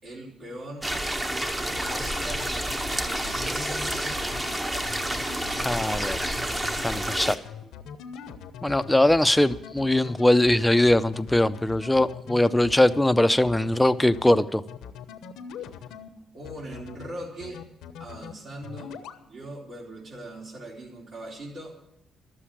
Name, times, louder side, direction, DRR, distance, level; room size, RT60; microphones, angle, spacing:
voice 1, 0.0-0.9 1.9-2.5 3.2-4.2 16.3-17.6 18.0-19.0 19.3-21.7, right 1 dB, 65° right, -4 dB, 3.9 m, -40 dB
sound 1, 0.8-7.4, right 1 dB, 15° right, 1.0 m, -29 dB
sound 2, 1.7-16.1 16.4-17.1 17.4-18.3 18.6-19.2, left 7 dB, 90° left, 1.0 m, -41 dB
voice 2, 5.6-6.3 6.8-7.3 8.6-14.6, left 1 dB, 5° left, 11 dB, 0.6 m, -21 dB
12.5 x 7.5 x 10.0 m, 0.82 s
cardioid pair, 90°, 0 cm